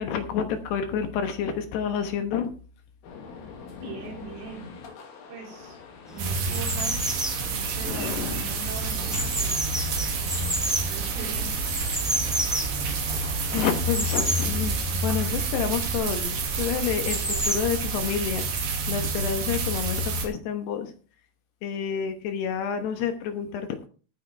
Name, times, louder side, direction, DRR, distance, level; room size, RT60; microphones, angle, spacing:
voice 1, 0.0-2.5 3.8-3.9 7.9-8.4 13.5-18.5 18.9-20.9 21.6-23.9, left 7 dB, 70° left, 7 dB, 2.9 m, -29 dB
sound 1, 3.0-14.4, left 5 dB, 90° left, 4.9 m, -45 dB
voice 2, 3.8-4.7 5.3-5.8 6.1-9.6 10.7-11.5, right 4 dB, 85° right, 1 dB, 6.3 m, -40 dB
sound 2, 6.1-17.6, equal, ahead, 0.5 m, -32 dB
sound 3, 6.2-20.3, right 3 dB, 55° right, 3.4 m, -28 dB
15.0 x 9.6 x 3.4 m, 0.37 s
omnidirectional pair, 5.6 m